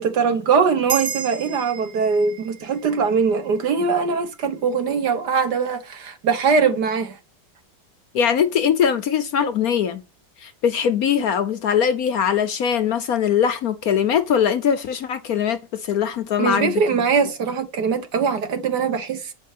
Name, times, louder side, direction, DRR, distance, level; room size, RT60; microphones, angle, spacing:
voice 1, 0.0-7.2 16.4-19.3, right 5 dB, 65° right, 1.9 m, -21 dB
sound 1, 0.9-5.6, right 7 dB, 40° right, 1.4 m, -35 dB
voice 2, 8.1-10.0 10.4-17.0, left 8 dB, 60° left, 1.1 m, -21 dB
8.9 x 5.3 x 6.6 m
omnidirectional pair, 2.0 m